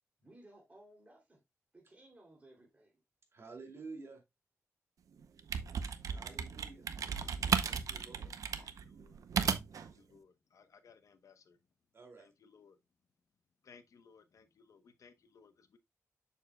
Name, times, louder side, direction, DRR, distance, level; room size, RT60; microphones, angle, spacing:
voice 1, 0.2-1.4 1.7-3.0, right 1 dB, 25° right, 2.9 m, -59 dB
voice 2, 3.3-4.2 6.1-6.9 7.6-8.3 11.9-12.3, right 4 dB, 50° right, 2.4 m, -50 dB
sound 1, 5.2-9.9, right 7 dB, 90° right, 0.6 m, -35 dB
voice 3, 8.6-9.2 9.7-11.6 12.2-12.8 13.6-15.8, left 5 dB, 70° left, 0.9 m, -62 dB
7.2 x 6.7 x 2.2 m
wide cardioid pair, 125°, 6 cm